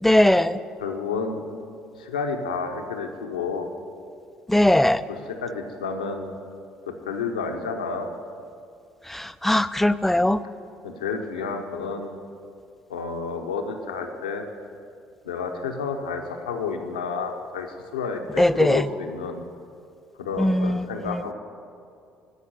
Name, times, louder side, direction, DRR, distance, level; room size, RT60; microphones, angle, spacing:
voice 1, 0.0-0.6 4.5-5.0 9.1-10.4 18.4-18.9 20.4-21.2, left 1 dB, 5° left, 14 dB, 0.4 m, -20 dB
voice 2, 0.8-1.4 2.0-3.7 5.1-6.3 6.9-8.2 10.2-10.3 10.8-12.2 12.9-14.5 15.2-19.4 20.2-21.3, left 5 dB, 80° left, 5 dB, 0.9 m, -30 dB
13.5 x 5.9 x 7.8 m, 2.4 s
figure-of-eight pair, 55°, 4 cm